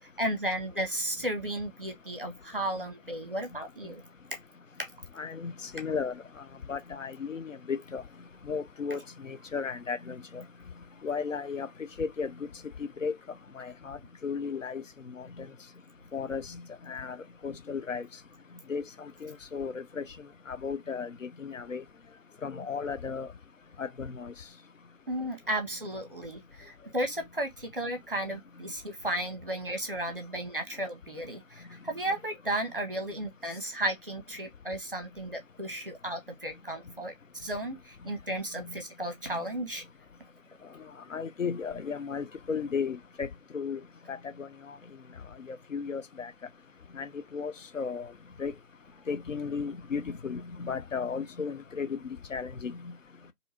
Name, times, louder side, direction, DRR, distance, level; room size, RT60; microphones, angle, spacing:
voice 1, 0.2-4.0 25.1-39.8, right 1 dB, 40° right, 0.8 m, -34 dB
voice 2, 5.2-6.1 6.7-8.0 8.5-10.4 11.0-11.7 12.0-12.3 12.8-13.1 13.6-14.0 14.2-14.8 15.2-15.5 16.1-16.6 16.9-17.2 17.4-18.1 18.7-18.8 19.2-20.0 20.5-21.8 22.4-23.3 23.8-24.3 39.3-39.4 41.1-43.3 43.5-43.8 44.1-44.5 45.5-46.3 46.9-48.1 48.4-48.5 49.1-52.0 52.3-52.8, left 5 dB, 65° left, 0.5 m, -34 dB
2.7 x 2.4 x 4.1 m
figure-of-eight pair, 170°, 41 cm